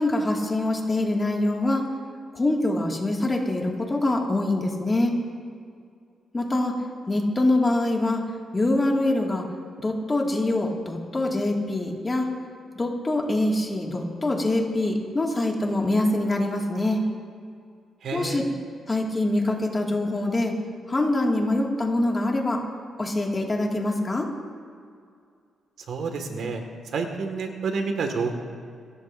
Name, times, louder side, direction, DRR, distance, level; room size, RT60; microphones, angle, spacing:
voice 1, 0.0-1.9 2.3-5.1 6.3-6.7 7.1-8.3 8.5-9.4 9.8-12.3 12.7-17.0 18.1-18.4 18.9-20.6 20.9-22.6 23.0-24.3, left 2 dB, 20° left, -1 dB, 2.0 m, -24 dB
voice 2, 18.0-18.5 25.9-26.6 26.9-28.3, right 4 dB, 65° right, 4 dB, 1.7 m, -29 dB
28.0 x 14.5 x 2.6 m, 2.3 s
cardioid pair, 140°, 0 cm